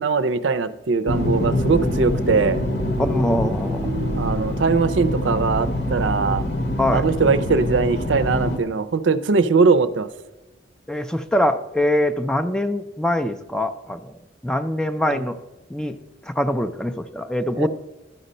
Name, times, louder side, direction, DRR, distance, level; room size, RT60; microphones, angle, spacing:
voice 1, 0.0-2.6 4.2-6.4 6.9-10.1 15.1-15.2 17.5-17.7, right 4 dB, 80° right, 13 dB, 0.5 m, -21 dB
sound 1, 1.1-8.6, left 1 dB, 60° left, 0.9 m, -24 dB
voice 2, 3.0-3.9 6.8-7.0 10.9-14.1 14.4-15.4 15.7-16.0 16.3-17.7, left 1 dB, 5° left, 8 dB, 0.4 m, -23 dB
12.0 x 5.1 x 5.4 m, 1.1 s
head